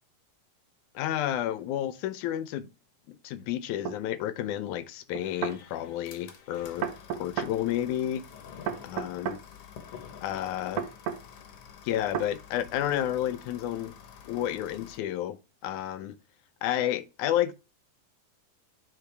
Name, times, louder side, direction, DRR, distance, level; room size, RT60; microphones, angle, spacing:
voice 1, 1.0-2.7 3.1-6.9 7.1-8.2 8.8-9.4 10.2-10.8 11.8-13.9 14.3-15.4 15.6-16.2 16.6-17.5, left 12 dB, 80° left, 1.9 m, -31 dB
sound 1, 3.8-4.0 5.1-5.6 6.8-7.5 8.7-9.4 10.8-11.2 12.1-12.3, right 8 dB, 85° right, 1.3 m, -32 dB
sound 2, 5.2-15.0, left 8 dB, 60° left, 1.8 m, -49 dB
9.8 x 3.9 x 3.3 m
omnidirectional pair, 3.8 m